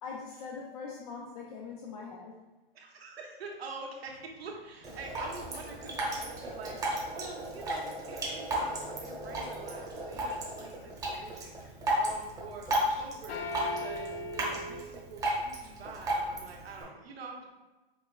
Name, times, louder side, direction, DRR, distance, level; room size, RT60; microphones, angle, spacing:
voice 1, 0.0-2.4, left 5 dB, 40° left, -2 dB, 0.5 m, -42 dB
voice 2, 2.7-13.4 13.8-17.5, right 4 dB, 80° right, 0 dB, 0.9 m, -46 dB
sound 1, 4.1-8.2 8.5-9.4 9.9-10.4 10.7-13.0 13.3-14.8, left 1 dB, 85° left, 0.5 m, -42 dB
Drip, 4.8-16.8, right 1 dB, 10° right, 0.7 m, -34 dB
5.0 x 2.3 x 2.2 m, 1.1 s
hypercardioid pair, 135°, 30 cm